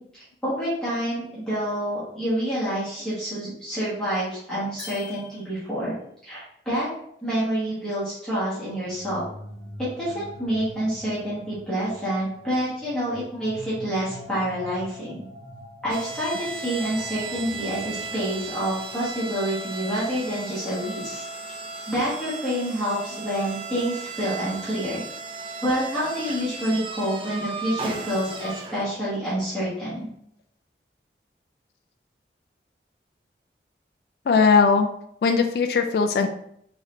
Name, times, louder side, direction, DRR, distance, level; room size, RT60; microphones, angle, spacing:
voice 1, 0.0-5.9 6.2-6.9 7.2-9.2 9.9-15.2 15.8-21.2 21.9-25.0 25.6-30.1, equal, 5° left, -12 dB, 1.3 m, -28 dB
sound 1, 4.8-5.9, left 5 dB, 45° left, 1.3 m, -43 dB
sound 2, 8.8-20.7, equal, 75° right, 1.0 m, -45 dB
sound 3, 15.9-29.1, right 3 dB, 30° right, 0.4 m, -36 dB
voice 2, 34.3-34.9 35.2-36.3, left 5 dB, 60° left, 6 dB, 0.3 m, -19 dB
4.0 x 3.1 x 2.6 m, 0.70 s
head